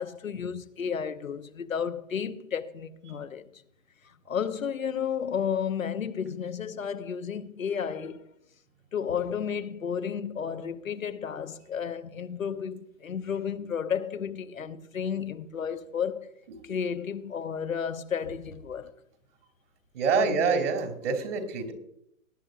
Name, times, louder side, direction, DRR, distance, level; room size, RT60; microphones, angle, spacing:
voice 1, 0.0-3.5 4.3-8.3 8.9-16.3 16.6-18.9 20.1-20.6, left 7 dB, 80° left, 1.0 m, -32 dB
voice 2, 19.9-21.7, right 5 dB, 60° right, 2.9 m, -26 dB
19.5 x 9.9 x 2.5 m
figure-of-eight pair, 115°, 40 cm